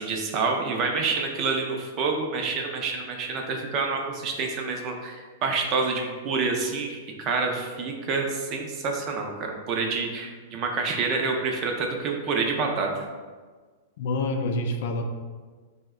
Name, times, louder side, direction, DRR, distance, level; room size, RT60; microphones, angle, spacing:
voice 1, 0.0-13.0, right 4 dB, 30° right, 2 dB, 0.4 m, -28 dB
voice 2, 14.0-15.0, left 2 dB, 60° left, 4 dB, 0.3 m, -27 dB
2.7 x 2.0 x 3.5 m, 1.4 s
supercardioid pair, 160°, 0 cm